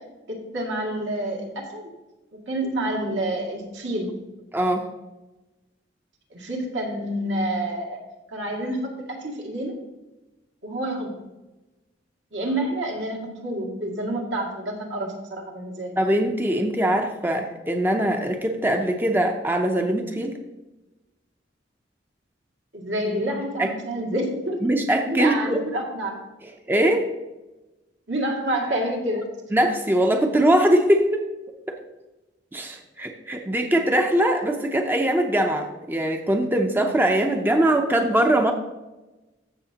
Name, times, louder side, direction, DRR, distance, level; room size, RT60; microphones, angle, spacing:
voice 1, 0.3-1.9 2.5-4.1 6.3-8.0 8.3-9.8 10.6-11.2 12.3-16.0 22.7-24.6 25.1-26.2 26.8-27.0 28.1-29.3, right 1 dB, 75° right, 0 dB, 2.2 m, -28 dB
voice 2, 4.5-4.8 16.0-20.4 23.6-23.7 24.6-25.6 26.7-27.1 29.5-31.3 31.7-31.8 32.5-38.5, right 1 dB, 10° right, 4 dB, 0.6 m, -22 dB
15.0 x 6.5 x 2.9 m, 1.1 s
head